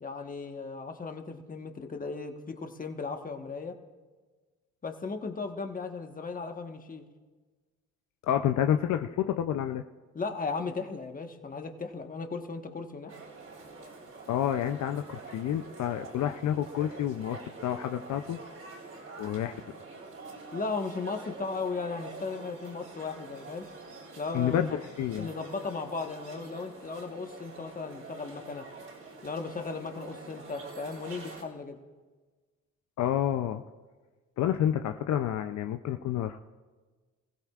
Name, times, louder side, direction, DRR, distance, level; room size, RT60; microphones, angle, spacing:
voice 1, 0.0-3.7 4.8-7.0 10.1-13.1 20.5-23.6 24.2-24.8 25.1-28.7 29.2-31.8, left 4 dB, 30° left, 5 dB, 1.3 m, -36 dB
voice 2, 8.2-9.8 14.3-18.4 19.2-19.6 24.3-25.3 33.0-33.6 34.4-36.4, left 10 dB, 70° left, 7 dB, 0.6 m, -29 dB
sound 1, 13.1-31.4, right 3 dB, 55° right, 3.9 m, -46 dB
25.5 x 15.5 x 2.4 m, 1.4 s
cardioid pair, 90°, 30 cm